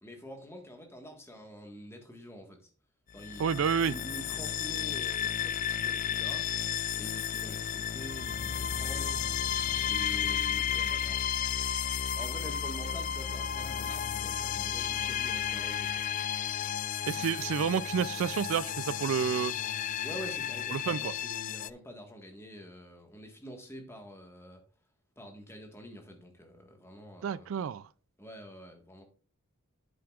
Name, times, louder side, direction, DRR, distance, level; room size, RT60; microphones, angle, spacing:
voice 1, 0.0-2.7 3.1-3.5 3.8-6.6 7.0-9.3 9.9-11.2 12.2-16.1 17.4-17.5 20.0-24.6 25.2-27.6 28.2-29.0, equal, 10° left, 1.5 m, -47 dB
sound 1, 3.1-21.7, left 9 dB, 35° left, 0.3 m, -33 dB
voice 2, 3.4-4.0 17.1-19.5 20.7-21.1 27.2-27.8, right 7 dB, 70° right, 0.3 m, -29 dB
10.5 x 7.7 x 2.4 m
head